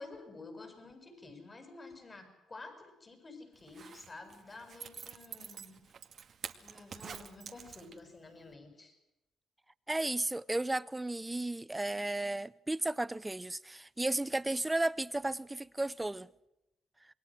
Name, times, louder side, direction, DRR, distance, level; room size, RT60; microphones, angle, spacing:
voice 1, 0.0-5.8 6.6-8.9, left 3 dB, 30° left, 7.3 m, -50 dB
Zipper (clothing), 3.6-8.2 8.5-8.6, right 7 dB, 55° right, 2.2 m, -47 dB
voice 2, 9.9-16.3, right 2 dB, 15° right, 0.8 m, -34 dB
27.5 x 21.5 x 6.3 m
cardioid pair, 90°, 0 cm